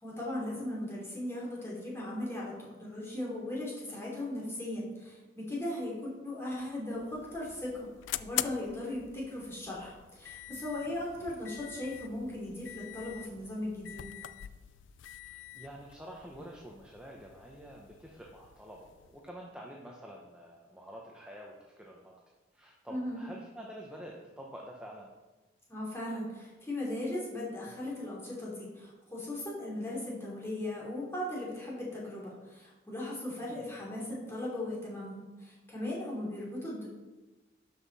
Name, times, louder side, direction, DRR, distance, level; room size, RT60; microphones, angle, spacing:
voice 1, 0.0-7.9 8.2-14.1 22.9-23.2 25.7-36.9, left 1 dB, 15° left, -5 dB, 2.9 m, -38 dB
sound 1, 6.9-19.3, left 13 dB, 75° left, 0.4 m, -44 dB
voice 2, 10.9-11.4 15.2-22.1 22.5-25.1 33.3-33.7, equal, 5° right, -2 dB, 0.8 m, -48 dB
12.0 x 5.7 x 4.1 m, 1.2 s
head